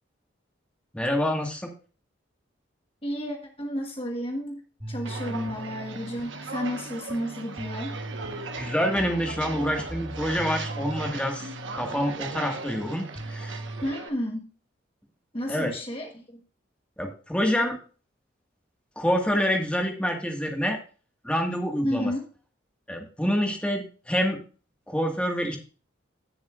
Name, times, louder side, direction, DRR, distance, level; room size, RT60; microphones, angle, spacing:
voice 1, 0.9-1.7 8.6-11.5 11.7-13.6 15.5-15.7 17.0-17.8 18.9-20.8 21.2-22.1 22.9-24.4 24.9-25.6, equal, 5° left, 2 dB, 1.6 m, -27 dB
voice 2, 3.0-4.6 4.9-7.9 13.8-14.5 15.3-16.4 21.8-22.2, equal, 30° left, 2 dB, 1.2 m, -31 dB
sound 1, 4.8-13.9, right 1 dB, 20° right, 2.3 m, -39 dB
Walk footsteps, 5.0-14.1, right 4 dB, 75° right, 1.2 m, -38 dB
17.0 x 7.0 x 2.4 m, 0.38 s
head